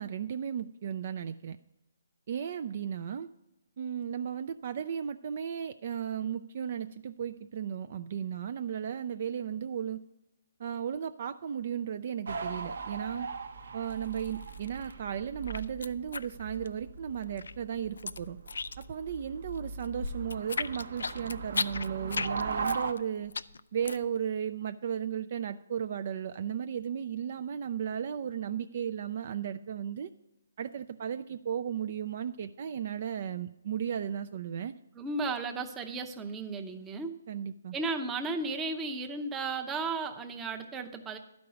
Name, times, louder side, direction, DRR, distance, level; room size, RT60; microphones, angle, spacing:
voice 1, 0.0-1.6 2.3-3.3 3.8-10.0 10.6-13.3 13.7-18.4 18.8-23.3 23.7-30.1 30.6-34.7 37.3-37.7, right 8 dB, 45° right, 10 dB, 0.3 m, -35 dB
sound 1, 12.3-22.9, right 4 dB, 70° right, 0.8 m, -39 dB
sound 2, 13.9-14.9 15.2-17.0 17.2-19.1 19.4-24.2, left 4 dB, 85° left, 0.4 m, -36 dB
voice 2, 34.9-37.1 37.7-41.2, right 3 dB, 10° right, 5 dB, 0.7 m, -34 dB
12.0 x 5.2 x 6.8 m, 0.93 s
hypercardioid pair, 160°, 0 cm